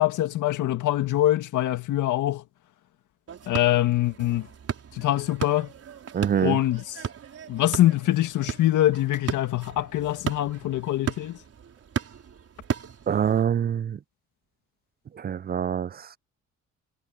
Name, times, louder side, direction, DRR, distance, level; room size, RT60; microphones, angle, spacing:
voice 1, 0.0-2.4 3.5-4.5 4.9-5.7 6.4-6.8 7.5-11.4, left 14 dB, 80° left, 2.1 m, -24 dB
sound 1, 3.3-13.4, right 7 dB, 50° right, 4.7 m, -36 dB
voice 2, 6.1-6.6 13.1-14.0 15.2-16.2, right 8 dB, 30° right, 0.4 m, -25 dB
cardioid pair, 90°, 30 cm